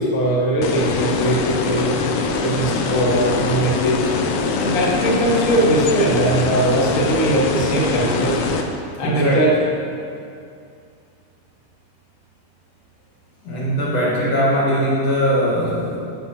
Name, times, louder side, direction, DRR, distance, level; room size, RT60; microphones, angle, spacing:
voice 1, 0.0-1.9 2.4-4.1 4.6-8.4 9.0-9.5, right 1 dB, 40° left, -6 dB, 1.4 m, -20 dB
sound 1, 0.6-8.6, left 4 dB, 85° left, 1.4 m, -23 dB
voice 2, 9.0-9.5 13.4-16.0, equal, 65° left, -5 dB, 1.9 m, -20 dB
11.0 x 7.0 x 2.8 m, 2.4 s
omnidirectional pair, 3.5 m